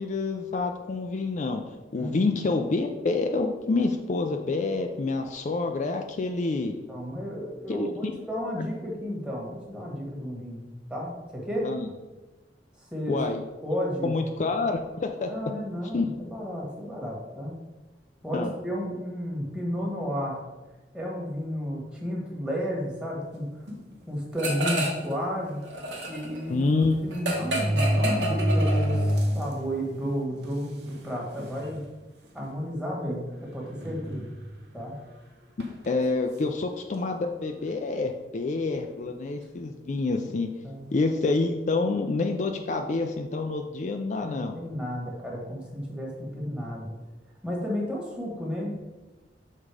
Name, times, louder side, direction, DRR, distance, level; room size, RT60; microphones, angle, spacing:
voice 1, 0.0-1.6 1.9-6.7 7.7-8.1 11.6-11.9 13.1-13.4 14.0-15.3 15.9-16.1 18.3-18.5 26.5-27.0 35.9-40.5 40.9-44.6, left 3 dB, 45° left, 4 dB, 0.4 m, -27 dB
voice 2, 6.9-10.6 10.9-11.7 12.9-13.2 13.6-14.1 15.3-17.5 18.2-20.4 20.9-23.6 24.1-25.6 26.1-26.6 27.0-31.8 32.3-34.3 34.7-35.0 40.6-40.9 44.2-46.9 47.4-48.7, equal, 5° right, -2 dB, 1.4 m, -32 dB
sound 1, 23.7-23.9 24.7-24.8 25.1-25.2 26.5-26.6 27.3-29.5 30.0-30.1 30.9-31.0 31.4-31.8 32.4-32.5 33.8-34.6 35.6-35.9, right 1 dB, 65° right, 1.0 m, -27 dB
sound 2, 24.4-25.1 25.4-29.2, equal, 85° right, 1.4 m, -30 dB
6.5 x 3.7 x 4.8 m, 1.1 s
head